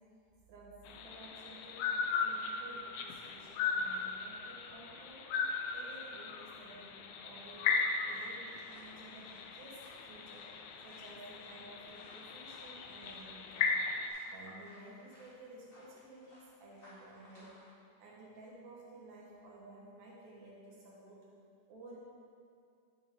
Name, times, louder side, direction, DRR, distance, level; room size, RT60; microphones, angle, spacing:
voice 1, 0.5-1.9 2.2-5.3 5.7-7.7 8.1-10.5 10.8-13.7 14.3-17.6 18.0-21.2 21.7-22.0, right 2 dB, 70° right, -5 dB, 2.5 m, -54 dB
sound 1, 0.9-14.1, left 5 dB, 85° left, 1.5 m, -37 dB
sound 2, 7.7-17.7, equal, 30° left, 2.1 m, -61 dB
10.5 x 6.3 x 3.5 m, 2.5 s
omnidirectional pair, 3.4 m